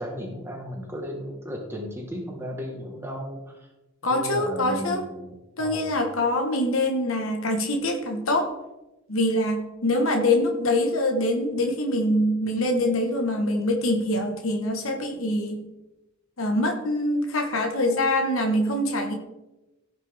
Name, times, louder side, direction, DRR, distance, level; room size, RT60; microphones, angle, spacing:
voice 1, 0.0-3.7 4.1-5.9, equal, 10° right, 0 dB, 1.3 m, -35 dB
voice 2, 4.0-5.1 5.6-8.5 9.1-15.6 16.4-19.1, left 1 dB, 80° left, 3 dB, 1.3 m, -24 dB
16.0 x 6.0 x 3.4 m, 0.99 s
head